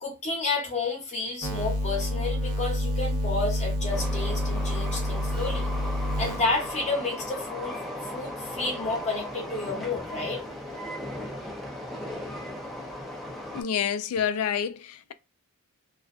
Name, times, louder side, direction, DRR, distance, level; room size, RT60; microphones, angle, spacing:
voice 1, 0.0-5.7 6.2-10.4, left 3 dB, 35° left, 0.8 m, -31 dB
sound 1, 1.4-6.8, equal, 90° right, 0.7 m, -28 dB
Train, 3.9-13.6, left 1 dB, ahead, 0.5 m, -37 dB
voice 2, 13.5-15.1, left 8 dB, 90° left, 0.3 m, -28 dB
2.4 x 2.2 x 2.5 m
head